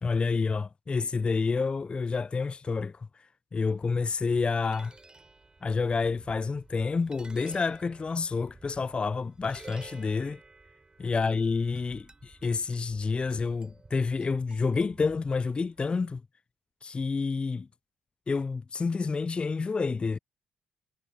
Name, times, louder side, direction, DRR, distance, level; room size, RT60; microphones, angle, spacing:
voice 1, 0.0-3.1 3.5-4.9 5.6-10.4 11.0-16.2 16.8-17.7 18.3-20.2, left 4 dB, 25° left, 0.3 m, -29 dB
sound 1, 3.8-15.9, right 3 dB, 20° right, 6.7 m, -53 dB
hypercardioid pair, 50°, 4 cm